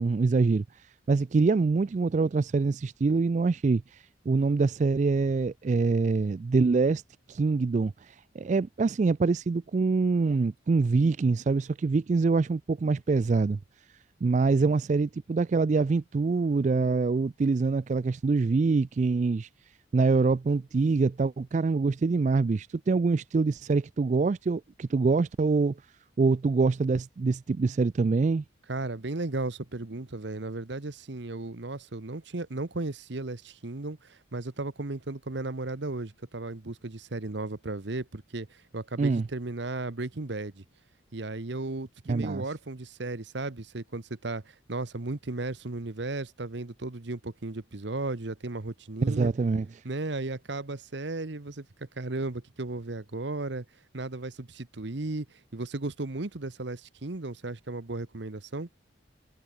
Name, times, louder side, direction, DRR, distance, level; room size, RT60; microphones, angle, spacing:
voice 1, 0.0-7.0 7.3-13.6 14.2-25.8 26.2-28.4 39.0-39.3 42.1-42.4 49.1-49.8, right 4 dB, 35° right, 0.3 m, -25 dB
voice 2, 28.7-40.6 41.1-49.3 49.8-53.6 53.9-55.3 55.5-58.7, right 2 dB, 60° right, 1.1 m, -35 dB
head